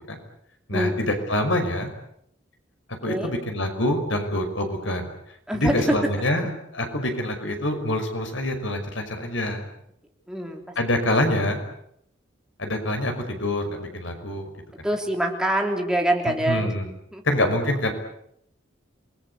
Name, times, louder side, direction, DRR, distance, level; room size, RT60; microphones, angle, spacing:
voice 1, 0.7-1.9 3.0-5.1 5.5-9.7 10.8-11.6 12.6-14.5 14.8-14.9 16.3-16.9 17.2-17.9, left 1 dB, 80° left, 5 dB, 5.6 m, -25 dB
voice 2, 2.9-3.4 5.5-5.9 10.3-10.6 14.8-16.7 17.1-17.2, right 1 dB, 5° right, 2 dB, 3.4 m, -25 dB
28.0 x 21.0 x 8.2 m, 0.73 s
head